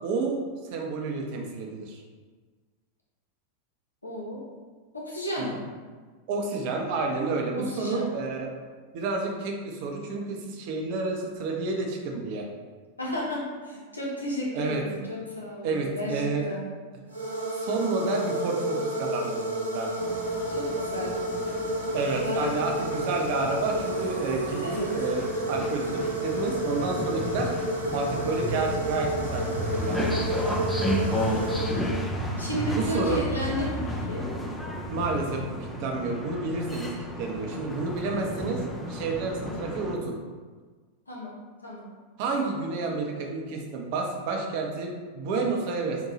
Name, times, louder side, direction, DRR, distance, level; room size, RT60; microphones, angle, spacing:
voice 1, 0.0-0.4 0.7-2.0 5.4-5.6 6.3-8.5 8.9-12.5 14.5-14.8 15.6-16.4 17.6-19.9 21.9-24.7 24.9-27.5 27.9-30.0 32.7-33.2 34.9-35.5 35.8-36.9 37.2-38.6 38.9-40.2 42.2-46.0, right 3 dB, 45° right, 1 dB, 0.6 m, -30 dB
voice 2, 4.0-4.4 4.9-5.5 7.5-8.1 13.0-16.7 20.5-21.2 22.2-22.7 24.6-25.0 30.8-31.1 32.4-34.3 39.4-39.9 41.1-41.9, equal, 80° left, -4 dB, 0.8 m, -33 dB
sound 1, 17.1-32.3, right 1 dB, 85° right, 0.6 m, -30 dB
sound 2, 20.0-40.0, equal, 10° left, 0.4 m, -33 dB
3.9 x 2.2 x 2.9 m, 1.4 s
figure-of-eight pair, 90°, 0 cm